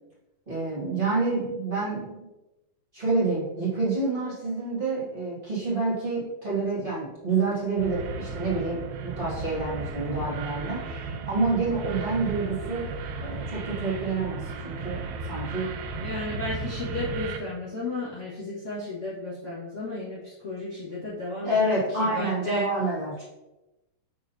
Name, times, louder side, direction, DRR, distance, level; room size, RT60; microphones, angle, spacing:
voice 1, 0.5-2.2 2.9-12.9 13.2-15.7 21.4-23.2, right 3 dB, 20° right, -9 dB, 1.4 m, -28 dB
sound 1, 7.8-17.4, right 3 dB, 90° right, 2.6 m, -35 dB
voice 2, 16.0-22.7, left 1 dB, 75° left, -11 dB, 0.6 m, -33 dB
6.4 x 6.4 x 2.8 m, 1.0 s
omnidirectional pair, 4.5 m